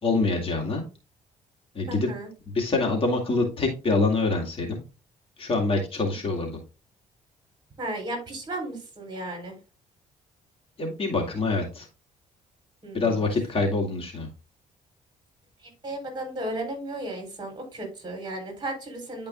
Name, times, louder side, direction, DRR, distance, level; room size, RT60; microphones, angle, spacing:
voice 1, 0.0-0.8 1.7-2.1 2.5-4.8 5.4-6.6 10.8-11.9 12.9-14.3, left 3 dB, 40° left, 1 dB, 2.1 m, -25 dB
voice 2, 1.9-2.3 7.8-9.6 12.8-13.2 15.6-19.3, right 1 dB, 30° right, 3 dB, 3.9 m, -34 dB
10.5 x 5.2 x 2.5 m, 0.32 s
cardioid pair, 95°, 14 cm